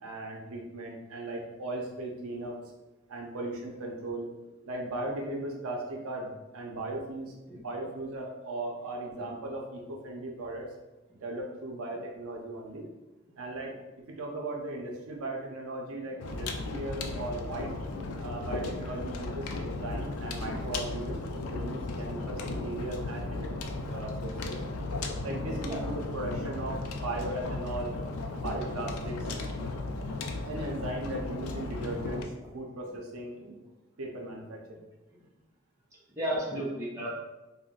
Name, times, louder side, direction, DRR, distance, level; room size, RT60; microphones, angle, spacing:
voice 1, 0.0-2.6 3.1-4.3 4.7-7.3 7.6-10.7 11.2-12.9 13.4-13.7 14.1-17.7 18.2-21.2 21.5-24.6 25.2-27.9 28.3-29.3 30.4-33.6 34.0-34.8, right 2 dB, 85° right, 0 dB, 0.5 m, -37 dB
sound 1, 16.2-32.3, left 2 dB, 90° left, 0.3 m, -35 dB
voice 2, 36.2-37.1, right 1 dB, 15° right, -7 dB, 0.6 m, -33 dB
2.4 x 2.1 x 3.7 m, 1.1 s
head